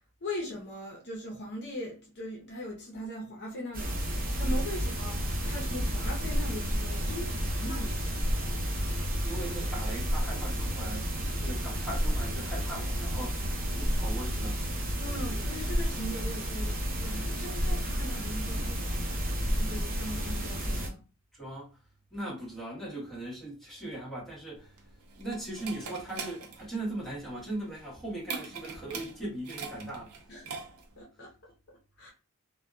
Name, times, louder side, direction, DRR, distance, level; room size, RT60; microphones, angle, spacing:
voice 1, 0.2-8.2 15.0-21.0 30.3-30.6 31.0-31.3 32.0-32.1, left 1 dB, 50° left, 0.7 m, -40 dB
sound 1, 3.7-20.9, equal, 40° right, 0.8 m, -31 dB
voice 2, 9.2-11.1 11.4-13.5 13.7-14.6 21.3-21.7 22.1-24.7 25.2-30.1, right 1 dB, ahead, 1.2 m, -39 dB
sound 2, 24.6-31.0, right 5 dB, 80° right, 0.6 m, -42 dB
2.7 x 2.2 x 2.3 m
head